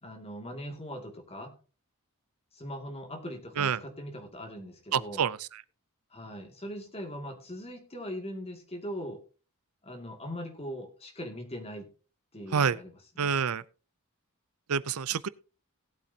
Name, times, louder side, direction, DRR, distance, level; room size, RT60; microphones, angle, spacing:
voice 1, 0.0-1.6 2.5-5.2 6.1-9.2 9.8-11.9 12.3-13.3, equal, 30° left, 2.4 m, -40 dB
voice 2, 4.9-5.5 12.5-12.8 13.2-13.6 14.7-15.3, right 6 dB, 85° right, 0.6 m, -27 dB
18.0 x 8.5 x 2.8 m
head